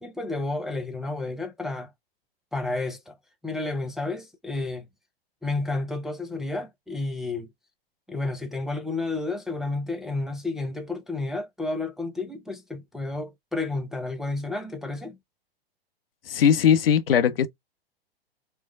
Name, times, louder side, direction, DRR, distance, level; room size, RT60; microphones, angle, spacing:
voice 1, 0.0-1.9 2.5-3.1 3.4-4.9 5.4-7.5 8.1-15.2, left 2 dB, ahead, 0.5 m, -31 dB
voice 2, 16.3-17.5, left 8 dB, 65° left, 0.8 m, -19 dB
4.6 x 2.2 x 3.5 m
figure-of-eight pair, 105°, 30 cm